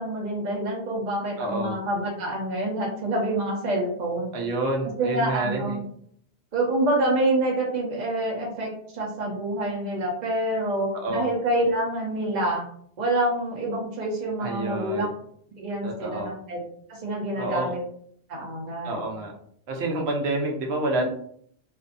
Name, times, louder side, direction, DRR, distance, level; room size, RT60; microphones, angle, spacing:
voice 1, 0.0-4.3 5.0-5.8 6.5-12.6 13.0-15.1 15.6-16.6 16.9-17.8 18.3-19.1 21.0-21.1, right 1 dB, 45° right, -2 dB, 0.8 m, -27 dB
voice 2, 1.4-1.8 4.3-5.8 10.9-11.3 14.4-15.1 15.8-16.3 17.4-17.7 18.8-19.3 19.7-21.0, right 2 dB, 75° right, 0 dB, 0.9 m, -28 dB
2.6 x 2.3 x 2.5 m, 0.62 s
omnidirectional pair, 1.1 m